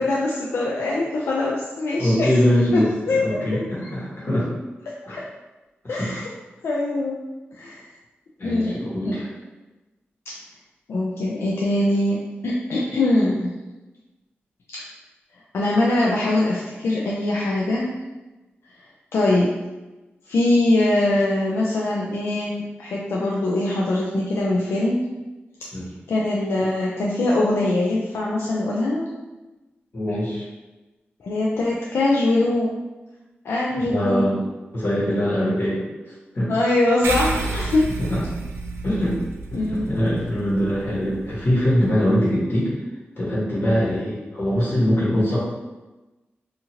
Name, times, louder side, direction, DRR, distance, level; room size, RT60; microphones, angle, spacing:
voice 1, 0.0-2.3 2.7-3.6 5.0-5.2 5.9-6.3 6.6-7.2 7.6-7.9 8.4-9.2 10.9-13.6 14.7-14.8 15.5-17.9 19.1-19.6 20.3-25.0 26.1-29.1 31.2-32.7 33.4-34.4 36.5-37.9 39.5-39.9 43.6-43.8, left 2 dB, 85° left, -4 dB, 0.3 m, -22 dB
voice 2, 2.0-4.5 5.1-5.2 5.8-6.2 8.4-9.3 25.7-25.9 29.9-30.4 33.7-34.4 34.7-35.8 36.3-36.5 38.0-38.2 38.8-39.2 39.5-42.7 43.1-45.4, equal, 60° left, -7 dB, 1.3 m, -22 dB
sound 1, 37.0-41.9, right 3 dB, 85° right, 0.3 m, -31 dB
2.8 x 2.4 x 2.8 m, 1.1 s
wide cardioid pair, 75°, 4 cm